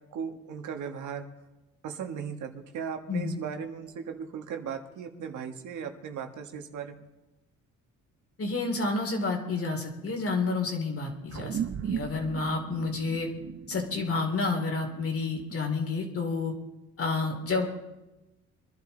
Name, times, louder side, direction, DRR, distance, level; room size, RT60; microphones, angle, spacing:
voice 1, 0.1-1.3 1.8-7.0, right 7 dB, 75° right, 5 dB, 1.6 m, -37 dB
voice 2, 8.4-13.3 13.7-16.5 17.0-17.6, left 3 dB, 50° left, 3 dB, 2.9 m, -30 dB
sound 1, 11.3-16.1, right 8 dB, 50° right, 0.8 m, -37 dB
23.0 x 11.0 x 4.0 m, 1.0 s
cardioid pair, 90°, 30 cm